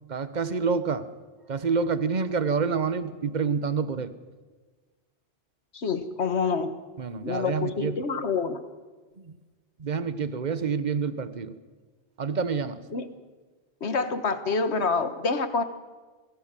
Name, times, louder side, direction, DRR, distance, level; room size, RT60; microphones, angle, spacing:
voice 1, 0.1-1.1 1.5-4.1 7.0-8.0 9.8-11.5 12.2-12.8, right 5 dB, 45° right, 13 dB, 1.2 m, -27 dB
voice 2, 5.7-6.7 7.2-8.6 12.9-13.1 13.8-15.6, left 4 dB, 85° left, 11 dB, 1.7 m, -27 dB
25.5 x 17.5 x 7.6 m, 1.4 s
omnidirectional pair, 1.1 m